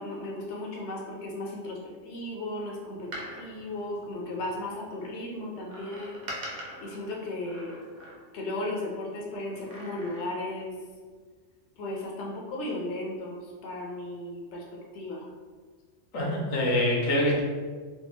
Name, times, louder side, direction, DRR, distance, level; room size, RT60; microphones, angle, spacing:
voice 1, 0.0-7.8 8.3-10.8 11.8-15.3, left 1 dB, 70° left, -2 dB, 0.9 m, -36 dB
Door, 2.9-4.7 5.7-8.5 9.5-10.6 10.9-11.0, right 1 dB, 45° right, 0.7 m, -43 dB
voice 2, 16.1-17.4, left 1 dB, 90° left, -3 dB, 1.2 m, -25 dB
3.3 x 2.3 x 3.1 m, 1.5 s
omnidirectional pair, 1.3 m